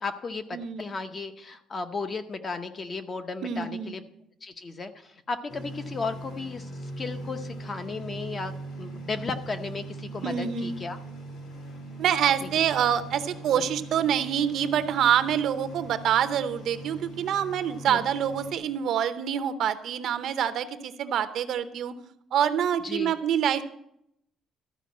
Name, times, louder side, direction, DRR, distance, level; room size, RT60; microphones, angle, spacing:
voice 1, 0.0-4.0 4.4-6.7 7.0-11.0 12.4-12.5 13.6-13.7 17.9-18.1 22.8-23.2, left 4 dB, 25° left, 9 dB, 0.7 m, -35 dB
voice 2, 0.5-0.9 3.4-3.9 10.2-10.8 12.0-21.9 22.3-23.6, right 9 dB, 55° right, 11 dB, 0.7 m, -26 dB
sound 1, 5.5-18.5, right 2 dB, 65° left, 2.4 m, -40 dB
13.0 x 5.1 x 8.3 m, 0.75 s
cardioid pair, 170°, 0 cm